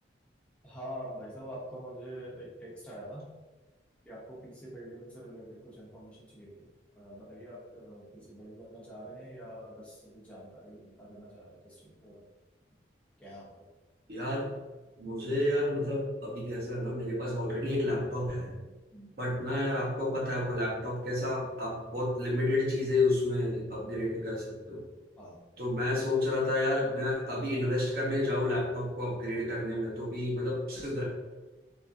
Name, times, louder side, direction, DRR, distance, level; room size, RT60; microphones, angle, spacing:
voice 1, 0.6-3.3 4.0-6.7 7.0-12.2 13.2-13.7 18.9-19.1 25.2-25.4, equal, 5° left, -7 dB, 0.5 m, -45 dB
voice 2, 14.1-14.5 15.0-18.6 19.2-24.8 25.6-31.0, left 1 dB, 55° right, -4 dB, 0.8 m, -30 dB
2.9 x 2.5 x 2.5 m, 1.2 s
head